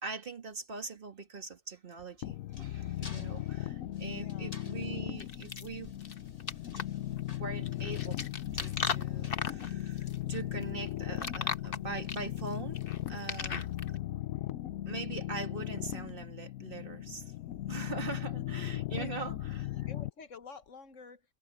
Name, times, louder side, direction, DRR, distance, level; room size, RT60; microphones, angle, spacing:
voice 1, 0.0-5.9 6.7-6.8 7.1-8.2 8.5-12.8 13.1-13.7 14.9-17.3 17.7-19.7, right 4 dB, 40° right, 2.2 m, -42 dB
sound 1, 1.9-10.2, left 3 dB, 30° left, 1.6 m, -55 dB
sound 2, 2.2-20.1, left 14 dB, 90° left, 1.1 m, -37 dB
voice 2, 3.0-3.5 4.1-4.5 18.0-18.2 18.9-19.4 19.9-21.2, left 5 dB, 70° left, 1.6 m, -50 dB
sound 3, 5.2-14.0, left 5 dB, 45° left, 1.3 m, -38 dB
omnidirectional pair, 1.4 m